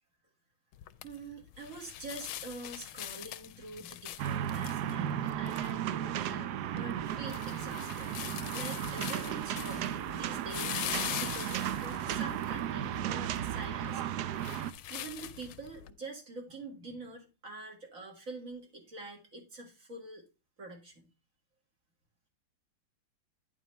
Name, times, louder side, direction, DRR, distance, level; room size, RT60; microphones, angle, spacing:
sound 1, 0.7-15.9, left 12 dB, 85° left, 1.5 m, -43 dB
voice 1, 1.0-8.1 8.5-14.2 14.6-14.7 14.9-20.2 20.6-21.1, right 2 dB, 40° right, 2 dB, 2.2 m, -46 dB
sound 2, 4.2-14.7, right 11 dB, 75° right, 0.9 m, -35 dB
10.0 x 5.0 x 4.3 m, 0.30 s
omnidirectional pair, 2.3 m